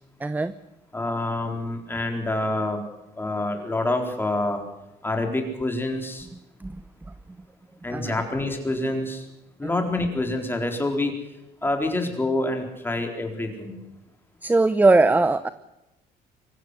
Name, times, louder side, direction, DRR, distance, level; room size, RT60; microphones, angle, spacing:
voice 1, 0.2-0.5 6.6-6.8 7.9-8.2 9.6-9.8 14.4-15.5, right 3 dB, 10° right, 14 dB, 0.7 m, -20 dB
voice 2, 0.9-2.8 3.2-4.6 5.0-6.3 7.8-9.3 9.6-11.1 11.6-13.8, left 2 dB, 10° left, 4 dB, 4.2 m, -27 dB
24.0 x 15.0 x 8.0 m, 0.96 s
cardioid pair, 110°, 17 cm